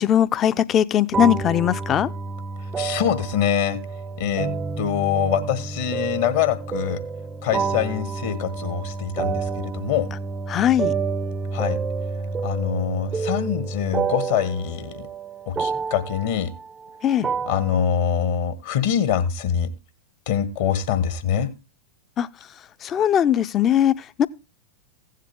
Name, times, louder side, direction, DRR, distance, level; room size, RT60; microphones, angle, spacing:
voice 1, 0.0-2.1 10.5-10.9 17.0-17.3 22.2-22.3 22.8-24.3, left 10 dB, 30° left, 0.6 m, -20 dB
sound 1, 1.1-17.8, right 5 dB, 20° right, 0.6 m, -29 dB
voice 2, 2.8-3.8 4.2-4.5 4.8-7.0 7.4-10.1 11.5-11.8 12.4-15.1 15.5-16.5 17.5-19.7 20.3-21.5, left 9 dB, 55° left, 1.4 m, -24 dB
15.5 x 7.4 x 3.6 m
figure-of-eight pair, 90°, 0 cm